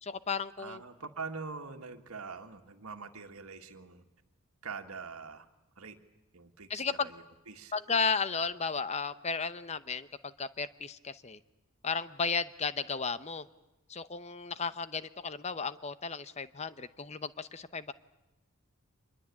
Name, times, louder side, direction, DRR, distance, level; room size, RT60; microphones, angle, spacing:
voice 1, 0.0-0.8 6.7-7.1 7.7-11.4 11.8-13.5 13.9-17.9, left 5 dB, 30° left, 14 dB, 0.8 m, -34 dB
voice 2, 0.6-4.0 4.6-5.5 5.8-6.0 6.3-7.7, right 4 dB, 80° right, 4 dB, 1.9 m, -44 dB
25.5 x 21.5 x 8.6 m, 1.0 s
head